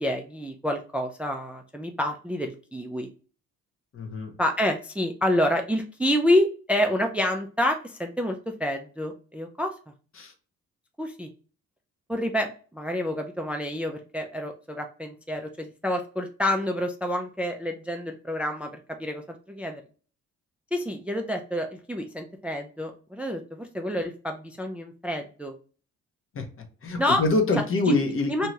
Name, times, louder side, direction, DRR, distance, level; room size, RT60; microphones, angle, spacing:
voice 1, 0.0-3.1 4.4-9.7 11.0-11.3 12.1-18.7 19.0-19.2 19.5-19.8 20.7-25.5 27.0-27.2 27.9-28.0 28.3-28.5, left 1 dB, 5° right, 4 dB, 0.4 m, -28 dB
voice 2, 3.9-4.3 10.2-10.3 26.3-28.3, left 2 dB, 45° left, 5 dB, 0.8 m, -25 dB
2.7 x 2.3 x 3.0 m, 0.39 s
cardioid pair, 90°, 30 cm